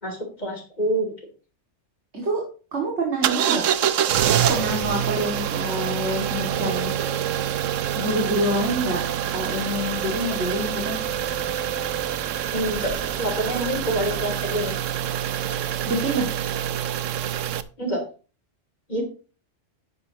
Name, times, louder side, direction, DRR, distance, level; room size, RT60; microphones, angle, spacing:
voice 1, 0.0-1.1 12.5-14.8 17.8-18.0 18.9-19.0, right 1 dB, 35° left, 2 dB, 3.3 m, -27 dB
voice 2, 2.7-3.6 4.5-6.9 7.9-9.0 9.3-11.0 15.9-16.3, right 1 dB, 60° right, -1 dB, 2.7 m, -26 dB
sound 1, 3.2-17.6, right 10 dB, 75° right, 1.0 m, -26 dB
11.5 x 9.3 x 3.0 m, 0.36 s
omnidirectional pair, 1.3 m